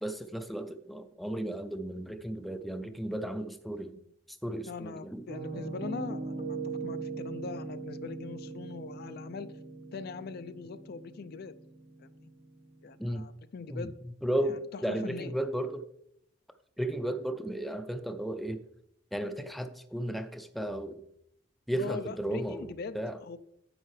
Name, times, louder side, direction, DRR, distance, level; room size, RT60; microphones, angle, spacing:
voice 1, 0.0-4.0 4.4-5.3 13.0-13.3 13.7-13.9 14.2-15.8 16.8-18.6 19.1-21.0 21.7-23.2, right 1 dB, ahead, 8 dB, 0.5 m, -34 dB
voice 2, 4.7-9.5 9.9-11.5 12.0-12.3 12.8-14.0 14.4-15.3 21.7-23.4, left 4 dB, 55° left, 12 dB, 0.4 m, -41 dB
Piano, 5.3-13.1, right 3 dB, 40° right, 0.8 m, -40 dB
10.0 x 7.9 x 3.2 m, 0.74 s
head